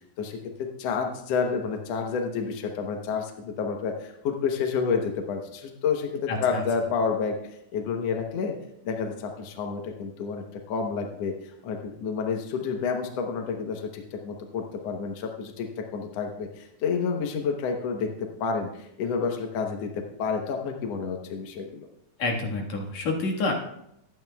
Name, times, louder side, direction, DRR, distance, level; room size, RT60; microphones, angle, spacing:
voice 1, 0.2-7.4 7.7-8.6 8.8-21.9, left 5 dB, 75° left, 3 dB, 1.5 m, -29 dB
voice 2, 6.3-6.6 22.2-23.5, left 3 dB, 55° left, -1 dB, 2.6 m, -28 dB
23.0 x 9.4 x 2.3 m, 0.80 s
omnidirectional pair, 4.2 m